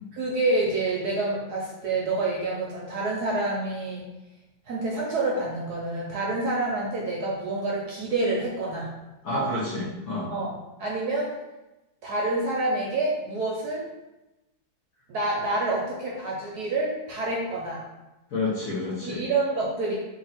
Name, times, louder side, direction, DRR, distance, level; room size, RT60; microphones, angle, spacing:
voice 1, 0.1-4.1 4.7-8.9 10.3-10.5 10.8-11.3 12.0-13.8 15.1-17.8 19.0-20.0, right 2 dB, 65° right, -4 dB, 1.0 m, -27 dB
voice 2, 9.2-10.3 18.3-19.2, left 2 dB, 55° left, -6 dB, 1.0 m, -29 dB
2.9 x 2.8 x 4.1 m, 1.0 s
omnidirectional pair, 2.2 m